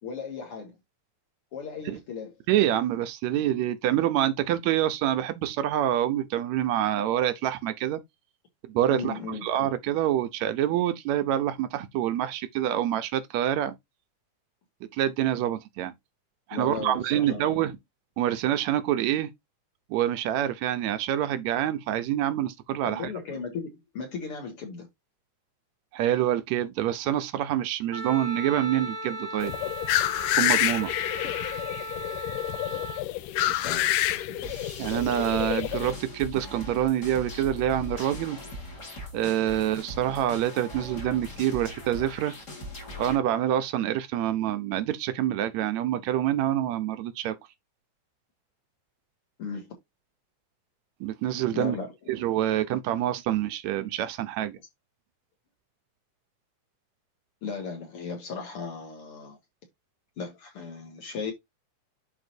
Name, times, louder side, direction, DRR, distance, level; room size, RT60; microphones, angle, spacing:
voice 1, 0.0-0.8 1.5-2.3 8.9-9.5 16.5-17.6 22.8-24.9 33.5-34.4 49.4-49.7 51.5-52.1 57.4-59.4 60.2-61.3, left 5 dB, 50° left, 2.3 m, -36 dB
voice 2, 2.5-8.0 8.7-13.8 14.9-15.9 16.5-17.8 18.2-19.3 19.9-23.1 25.9-29.5 30.4-30.9 34.8-38.4 39.1-42.3 43.0-47.3 51.0-51.7 52.1-54.6, right 12 dB, 75° right, 1.8 m, -26 dB
Wind instrument woodwind instrument, 27.9-33.1, right 1 dB, 20° right, 1.3 m, -37 dB
sound 1, 29.4-35.9, left 14 dB, 85° left, 2.2 m, -28 dB
sound 2, 34.4-43.2, left 2 dB, 30° left, 1.5 m, -40 dB
11.0 x 4.0 x 2.7 m
omnidirectional pair, 3.7 m